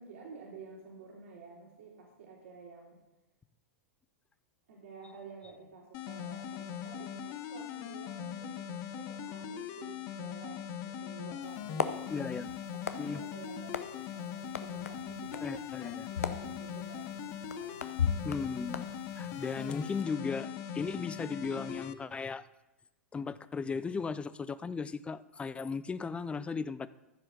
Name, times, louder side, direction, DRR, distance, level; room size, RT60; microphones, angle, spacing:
voice 1, 0.0-3.0 4.7-18.1, right 4 dB, 70° right, -3 dB, 3.2 m, -51 dB
sound 1, 5.9-21.9, left 8 dB, 45° left, 0.8 m, -41 dB
sound 2, 11.4-20.0, left 6 dB, 85° left, 0.7 m, -39 dB
voice 2, 12.1-12.5 13.0-13.2 15.4-16.1 18.2-18.9 19.2-22.4 23.1-26.9, left 5 dB, 15° left, 16 dB, 0.4 m, -36 dB
14.5 x 5.5 x 5.4 m, 1.0 s
hypercardioid pair, 100°, 8 cm